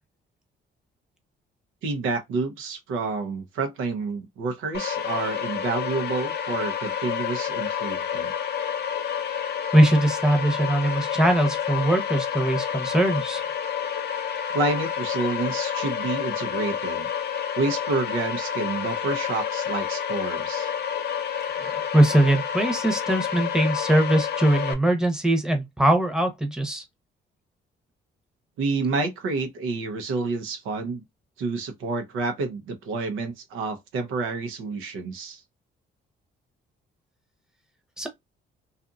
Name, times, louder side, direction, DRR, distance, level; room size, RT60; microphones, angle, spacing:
voice 1, 1.8-8.3 14.5-17.1 17.6-20.7 28.6-31.0 31.4-35.4, right 3 dB, 85° right, 0.7 m, -29 dB
sound 1, 4.7-24.7, left 8 dB, 55° left, 0.6 m, -29 dB
voice 2, 9.7-13.4 21.5-26.8 38.0-38.1, right 1 dB, 5° right, 0.8 m, -21 dB
2.7 x 2.5 x 2.3 m
cardioid pair, 90°, 20 cm